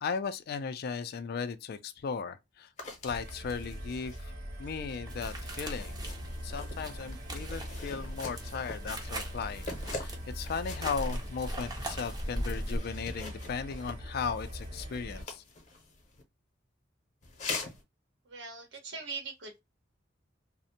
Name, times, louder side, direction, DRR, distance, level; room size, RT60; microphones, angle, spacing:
voice 1, 0.0-2.7 3.0-4.3 4.6-6.0 6.4-15.4, left 5 dB, 55° left, 0.4 m, -36 dB
sound 1, 2.8-16.2 17.2-17.8, left 3 dB, 40° left, 0.7 m, -45 dB
sound 2, 3.1-15.2, equal, 45° right, 1.0 m, -42 dB
sound 3, 5.1-12.8, right 1 dB, 20° right, 0.6 m, -39 dB
voice 2, 18.3-19.6, right 4 dB, 75° right, 0.8 m, -41 dB
2.5 x 2.1 x 2.7 m
head